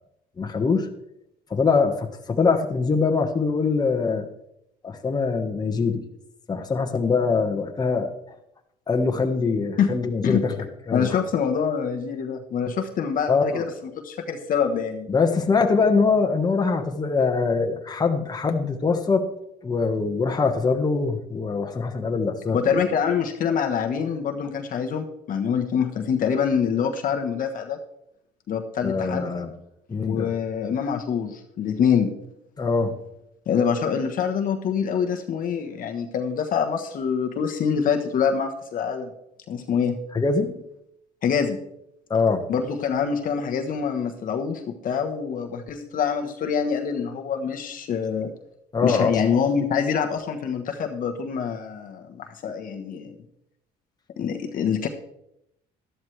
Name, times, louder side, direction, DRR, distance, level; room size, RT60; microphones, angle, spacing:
voice 1, 0.4-0.9 1.5-4.3 4.8-6.0 6.5-8.1 8.9-10.6 10.9-11.2 13.3-13.6 15.1-19.3 19.6-22.8 28.8-29.5 29.9-30.3 32.6-33.0 40.1-40.5 42.1-42.4 48.7-49.2, left 4 dB, 25° left, 3 dB, 1.4 m, -23 dB
voice 2, 10.9-13.7 14.0-15.1 22.5-27.8 28.5-29.3 30.0-32.1 33.5-39.1 39.5-40.0 41.2-41.6 42.5-48.3 48.8-53.1 54.2-54.9, left 7 dB, 55° left, 4 dB, 1.2 m, -25 dB
12.5 x 12.0 x 3.3 m, 0.79 s
cardioid pair, 110°, 17 cm